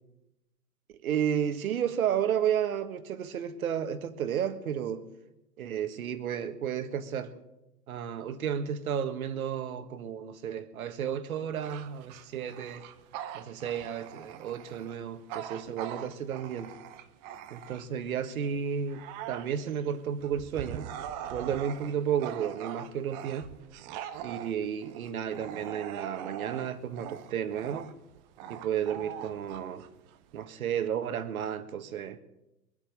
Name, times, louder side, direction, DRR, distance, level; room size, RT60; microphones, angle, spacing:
voice 1, 1.0-5.1 5.6-7.3 7.9-12.8 13.3-16.7 17.5-20.9 21.3-23.5 24.2-27.9 28.5-29.9 30.3-32.2, right 8 dB, 60° right, 1.6 m, -32 dB
Bark / Growling, 11.5-18.1 18.6-30.4, right 10 dB, 25° right, 0.8 m, -42 dB
22.5 x 8.7 x 6.8 m
figure-of-eight pair, 115°, 49 cm